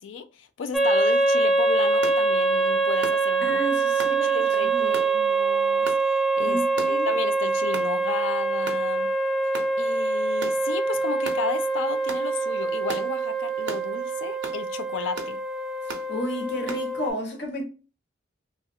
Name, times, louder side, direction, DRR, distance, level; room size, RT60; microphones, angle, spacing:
voice 1, 0.0-3.6 4.1-6.6 6.9-9.1 9.8-15.4, left 5 dB, 85° left, 0.4 m, -34 dB
sound 1, 0.7-17.1, right 3 dB, ahead, 0.3 m, -24 dB
sound 2, 2.0-2.2 3.0-3.2 4.0-4.2 4.9-5.1 5.8-6.0 6.8-7.0 7.7-7.9 8.6-8.8 9.5-9.7 10.4-10.6 11.2-11.4 12.1-12.3 12.9-13.1 13.7-13.9 14.4-14.6 15.1-15.3 15.9-16.1 16.7-16.8, right 3 dB, 75° right, 0.8 m, -35 dB
voice 2, 3.4-4.4 4.6-5.0 6.5-7.1 16.1-17.7, equal, 65° left, 1.0 m, -31 dB
3.1 x 2.4 x 2.6 m
head